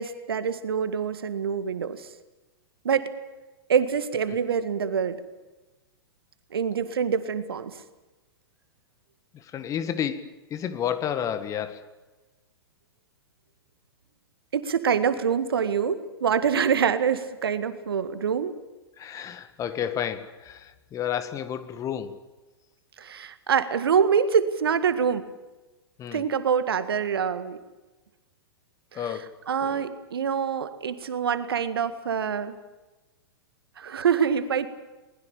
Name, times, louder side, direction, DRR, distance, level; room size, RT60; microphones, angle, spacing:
voice 1, 0.0-2.1 2.8-3.1 3.7-5.2 6.5-7.8 14.5-18.6 23.0-25.2 26.1-27.6 28.9-32.5 33.8-34.7, right 7 dB, 70° right, 1.9 m, -25 dB
voice 2, 9.5-10.2 10.5-11.8 19.0-22.1 26.0-26.2 28.9-29.3 29.6-29.8, left 9 dB, 25° left, 1.8 m, -31 dB
22.5 x 20.5 x 8.6 m
figure-of-eight pair, 105°, 13 cm